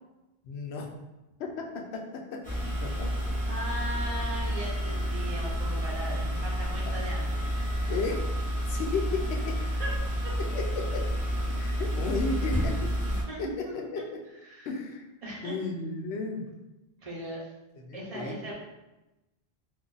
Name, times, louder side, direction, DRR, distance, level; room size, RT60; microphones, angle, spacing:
voice 1, 0.4-0.9 1.9-2.2 2.8-2.9 7.9-8.2 8.7-9.0 10.5-11.0 11.6-12.7 13.4-13.5 13.9-14.0 14.7-15.1 15.4-16.5 17.8-18.5, left 4 dB, 80° left, 1 dB, 0.8 m, -33 dB
sound 1, 2.4-13.2, equal, 10° left, 0.8 m, -30 dB
voice 2, 3.5-7.4 9.8-9.9 13.1-14.0 14.5-14.7 15.2-15.6 17.0-17.5 17.9-18.5, right 1 dB, 40° right, -4 dB, 0.8 m, -38 dB
2.6 x 2.4 x 3.8 m, 1.0 s
omnidirectional pair, 1.1 m